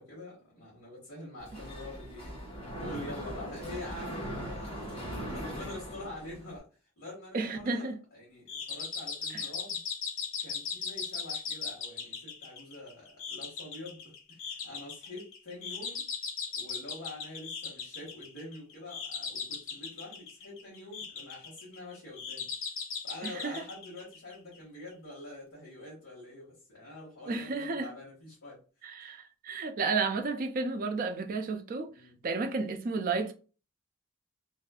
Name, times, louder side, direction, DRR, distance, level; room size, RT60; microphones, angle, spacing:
voice 1, 0.0-2.4 2.7-4.9 5.3-6.7 7.0-9.8 10.4-16.0 16.6-22.5 23.0-28.6 31.9-32.2, left 1 dB, 85° left, 1.1 m, -46 dB
Mechanisms, 1.4-6.6, equal, 30° left, 1.5 m, -40 dB
voice 2, 7.3-8.0 9.3-9.4 23.2-23.6 27.3-27.9 28.8-31.9 32.2-33.3, right 4 dB, 40° right, 0.3 m, -32 dB
sound 1, 8.5-24.6, left 6 dB, 65° left, 0.6 m, -39 dB
2.6 x 2.3 x 2.3 m
head